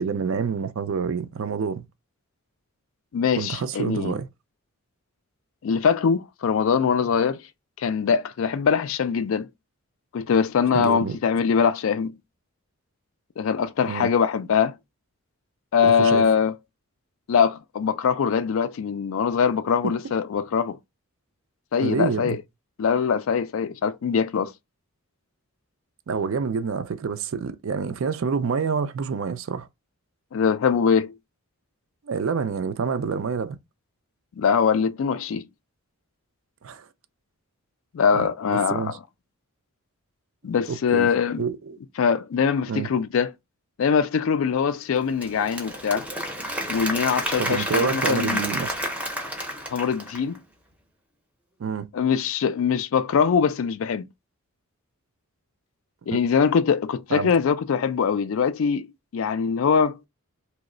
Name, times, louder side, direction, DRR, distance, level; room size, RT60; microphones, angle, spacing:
voice 1, 0.0-1.8 3.4-4.3 10.7-11.2 13.9-14.1 15.8-16.3 21.8-22.4 26.1-29.7 32.0-33.6 36.6-36.9 38.1-39.0 40.4-41.1 41.4-41.8 42.7-42.9 47.4-48.7 51.6-51.9 56.1-56.2 57.1-57.3, right 5 dB, 60° right, 0.4 m, -27 dB
voice 2, 3.1-4.1 5.6-7.4 7.8-9.5 10.1-12.2 13.4-14.7 15.7-16.5 17.3-20.8 21.7-22.4 22.8-24.5 30.3-31.1 34.4-35.5 37.9-38.9 40.4-41.4 42.0-43.3 43.8-46.1 46.7-48.5 49.7-50.4 51.9-54.0 56.1-58.9 59.1-60.0, left 6 dB, 65° left, 0.3 m, -22 dB
Applause / Crowd, 45.0-50.4, equal, 5° right, 0.5 m, -30 dB
3.0 x 2.0 x 3.7 m
head